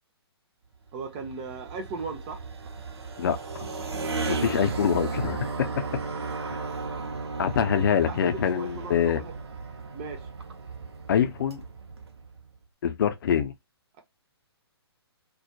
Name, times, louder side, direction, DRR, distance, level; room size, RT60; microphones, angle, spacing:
voice 1, 0.9-2.4 8.0-9.3 9.9-10.3, right 4 dB, 25° right, 0.5 m, -37 dB
sound 1, 0.9-12.5, right 4 dB, 70° right, 0.6 m, -35 dB
voice 2, 4.3-5.5 7.4-9.2 11.1-11.6 12.8-13.5, left 8 dB, 55° left, 0.5 m, -24 dB
2.2 x 2.1 x 2.6 m
figure-of-eight pair, 135°, 14 cm